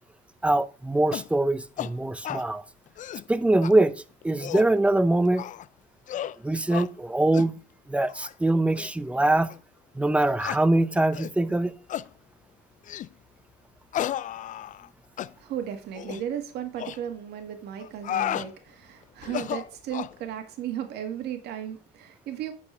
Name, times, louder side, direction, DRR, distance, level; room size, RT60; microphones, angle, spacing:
voice 1, 0.4-2.6 3.3-3.9 4.2-5.4 6.4-7.5 7.9-9.5 9.9-11.7, right 2 dB, 5° right, 0.7 m, -23 dB
sound 1, 1.1-1.3 1.8-1.9 2.2-2.5 2.9-3.3 3.6-3.7 4.2-4.7 5.4-5.7 6.1-6.4 6.7-6.9 7.3-7.5 8.1-8.3 8.8-8.9 9.5-9.6 10.4-10.6 11.1-11.4 11.9-12.1 12.9-13.1 13.9-14.9 15.2-15.3 15.9-16.2 16.8-17.0 17.8-18.5 19.2-20.2, left 11 dB, 50° left, 0.4 m, -33 dB
voice 2, 15.4-22.5, right 10 dB, 80° right, 1.9 m, -35 dB
9.6 x 6.7 x 3.3 m
cardioid pair, 110°, 17 cm